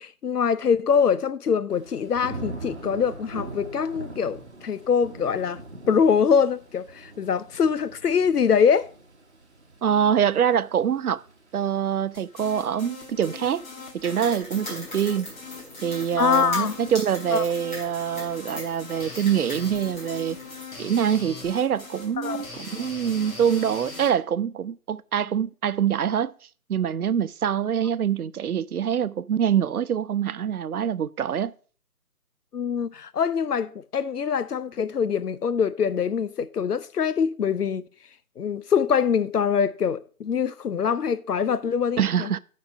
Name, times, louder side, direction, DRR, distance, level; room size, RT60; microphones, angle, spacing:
voice 1, 0.0-8.9 16.2-16.8 17.3-17.4 22.2-22.4 32.5-37.9 38.4-42.3, left 7 dB, 85° left, 0.7 m, -24 dB
Thunder / Rain, 1.7-12.6 13.0-13.5, right 2 dB, 45° right, 1.1 m, -42 dB
voice 2, 9.8-11.2 11.5-13.7 13.9-15.3 15.8-20.4 20.8-26.3 26.7-31.5 42.0-42.4, right 8 dB, 75° right, 0.5 m, -25 dB
sound 1, 12.1-24.1, left 4 dB, 65° left, 2.0 m, -41 dB
sound 2, 14.0-20.6, left 1 dB, 30° left, 3.5 m, -40 dB
9.2 x 4.3 x 6.0 m
figure-of-eight pair, 175°, 45 cm